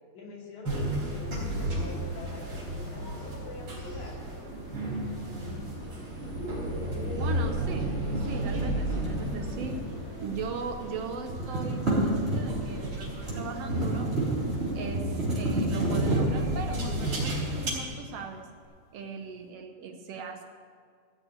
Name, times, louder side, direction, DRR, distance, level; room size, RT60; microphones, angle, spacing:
voice 1, 0.1-4.2, left 3 dB, 85° left, -3 dB, 3.9 m, -45 dB
sound 1, 0.7-17.7, right 1 dB, 50° right, 4.6 m, -33 dB
sound 2, 1.4-14.9, left 1 dB, 30° left, 4.2 m, -47 dB
voice 2, 7.1-9.9 10.2-14.1 14.7-18.5 18.9-20.4, right 5 dB, 70° right, 5 dB, 1.7 m, -39 dB
sound 3, 8.4-10.7 10.9-18.2, right 1 dB, 20° right, 3.8 m, -31 dB
15.0 x 6.7 x 8.6 m, 2.1 s
omnidirectional pair, 3.3 m